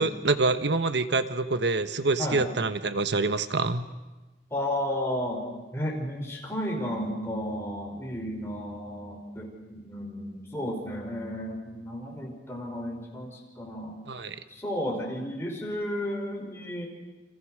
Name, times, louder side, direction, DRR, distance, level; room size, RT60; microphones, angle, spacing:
voice 1, 0.0-3.9 14.1-14.4, right 3 dB, 80° right, 10 dB, 1.1 m, -26 dB
voice 2, 4.5-5.4 5.7-13.9 14.5-16.9, equal, 15° left, -1 dB, 5.4 m, -33 dB
30.0 x 27.0 x 6.5 m, 1.1 s
head